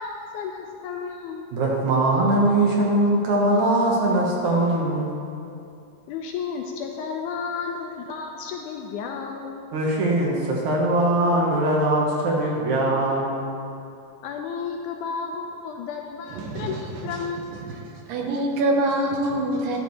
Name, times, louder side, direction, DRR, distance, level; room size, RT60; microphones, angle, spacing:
voice 1, 0.0-1.5 6.1-9.6 14.2-17.6, left 5 dB, 80° left, 2 dB, 2.0 m, -32 dB
voice 2, 1.5-5.1 9.7-13.5, right 1 dB, 65° right, -3 dB, 2.5 m, -21 dB
voice 3, 16.3-16.8 17.7-17.8 18.1-19.8, right 1 dB, 80° right, 1 dB, 2.7 m, -24 dB
13.0 x 11.0 x 3.2 m, 2.6 s
omnidirectional pair, 3.9 m